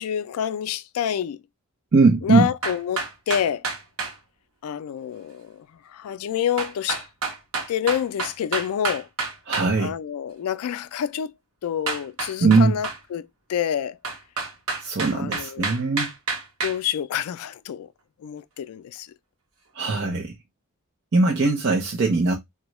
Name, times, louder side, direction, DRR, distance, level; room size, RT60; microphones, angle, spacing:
voice 1, 0.0-1.4 2.2-3.7 4.6-7.1 7.7-9.1 9.8-11.3 11.6-14.0 15.1-15.8 16.6-17.9 18.2-19.1, left 9 dB, 75° left, 0.3 m, -28 dB
voice 2, 1.9-2.5 9.5-9.9 12.4-12.8 14.8-16.1 19.7-20.3 21.1-22.4, right 3 dB, 50° right, 0.5 m, -20 dB
sound 1, 2.6-4.1 6.6-9.7 11.9-13.0 14.0-16.8, right 4 dB, 70° right, 0.9 m, -29 dB
3.6 x 2.2 x 3.0 m
head